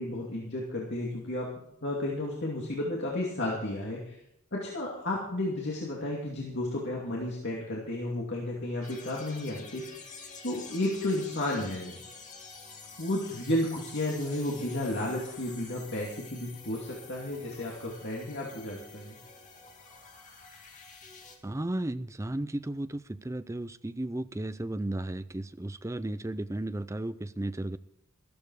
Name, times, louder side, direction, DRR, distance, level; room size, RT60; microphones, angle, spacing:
voice 1, 0.0-1.5 1.8-4.2 4.5-9.8 10.4-12.0 13.0-19.2, left 1 dB, 55° left, 2.6 m, -32 dB
sound 1, 8.8-21.4, left 4 dB, 35° left, 2.4 m, -48 dB
voice 2, 21.4-27.8, right 1 dB, 15° right, 0.5 m, -34 dB
14.0 x 13.5 x 4.8 m
head